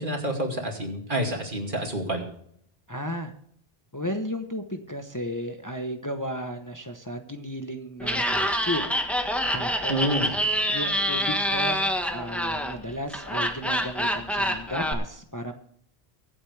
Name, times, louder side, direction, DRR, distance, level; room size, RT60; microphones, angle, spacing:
voice 1, 0.0-2.2 9.9-10.3, right 1 dB, 55° right, 2 dB, 2.7 m, -28 dB
voice 2, 2.9-3.3 3.9-8.8 9.5-10.1 10.7-15.5, equal, 20° left, 5 dB, 1.0 m, -34 dB
Laughter, 8.0-14.9, equal, ahead, 1.3 m, -26 dB
24.5 x 8.3 x 3.4 m, 0.67 s
omnidirectional pair, 1.0 m